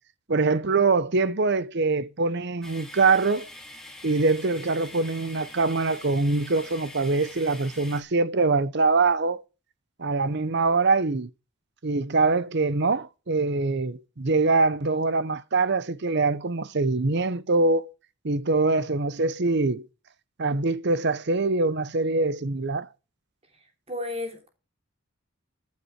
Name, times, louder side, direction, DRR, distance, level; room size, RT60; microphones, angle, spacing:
voice 1, 0.3-3.5 4.0-9.4 10.0-11.3 11.8-17.9 18.2-19.9 20.4-22.9, right 3 dB, 50° right, 0.8 m, -24 dB
sound 1, 2.6-8.0, left 1 dB, ahead, 2.2 m, -44 dB
voice 2, 23.6-24.5, left 2 dB, 30° right, 3.2 m, -34 dB
14.5 x 8.5 x 4.5 m
head